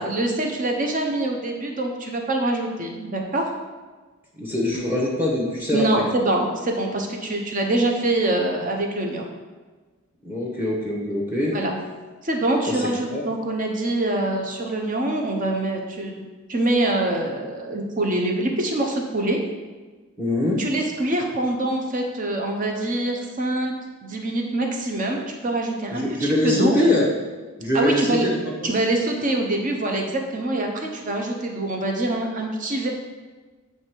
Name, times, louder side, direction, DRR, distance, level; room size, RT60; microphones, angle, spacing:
voice 1, 0.0-3.5 5.7-9.3 11.5-11.7 12.2-19.4 20.6-23.7 24.0-26.8 27.7-28.3 28.6-32.9, right 1 dB, 35° right, 1 dB, 0.8 m, -24 dB
voice 2, 4.4-6.0 10.2-11.6 12.7-13.2 20.2-20.6 25.9-27.1 27.6-28.7, left 1 dB, 10° right, -3 dB, 1.0 m, -23 dB
8.4 x 3.3 x 4.6 m, 1.3 s
head